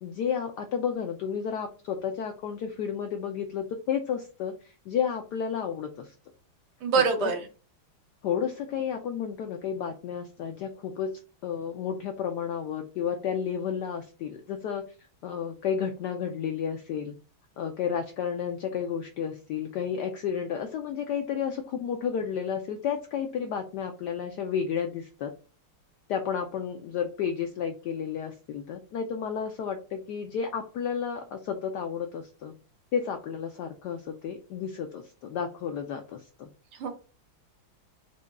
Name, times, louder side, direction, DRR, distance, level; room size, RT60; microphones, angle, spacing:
voice 1, 0.0-6.1 7.0-7.3 8.2-14.9 15.2-17.1 17.6-25.3 26.1-32.5 32.9-36.5, left 7 dB, 80° left, 5 dB, 0.9 m, -32 dB
voice 2, 6.8-7.4 36.8-36.9, right 4 dB, 80° right, 4 dB, 1.9 m, -24 dB
4.8 x 2.2 x 3.9 m, 0.35 s
omnidirectional pair, 2.3 m